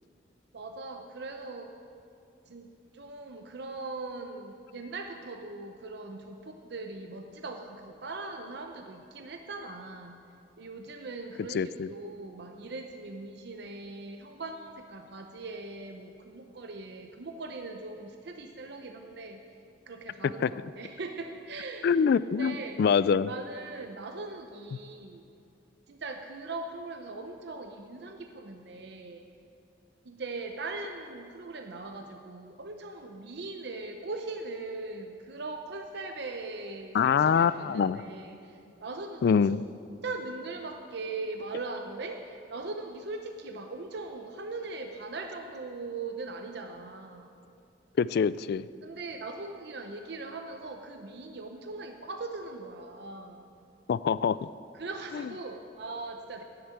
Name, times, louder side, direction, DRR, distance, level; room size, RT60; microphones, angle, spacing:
voice 1, 0.5-1.7 2.5-2.7 2.9-10.2 10.6-19.4 19.9-22.0 22.4-22.8 23.3-25.2 25.9-29.2 30.0-39.2 40.0-47.3 48.8-53.4 54.7-56.4, right 3 dB, 65° right, 5 dB, 0.7 m, -40 dB
voice 2, 11.5-11.9 20.4-20.5 21.8-23.3 24.7-24.8 36.9-38.0 39.2-39.6 48.0-48.7 53.9-54.5 55.1-55.3, left 6 dB, 60° left, 18 dB, 0.3 m, -25 dB
10.0 x 7.9 x 8.8 m, 2.5 s
head